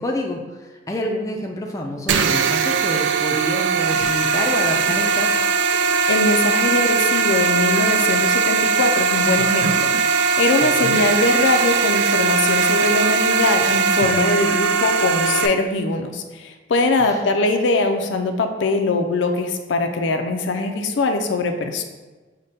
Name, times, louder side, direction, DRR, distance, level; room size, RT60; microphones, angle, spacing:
voice 1, 0.0-5.5 10.8-11.1 17.0-17.2, left 1 dB, 15° left, 0 dB, 0.3 m, -28 dB
sound 1, 2.1-15.5, right 5 dB, 80° right, 0.3 m, -19 dB
voice 2, 6.1-21.8, left 3 dB, 80° left, 6 dB, 0.4 m, -22 dB
5.0 x 2.2 x 4.0 m, 1.2 s
head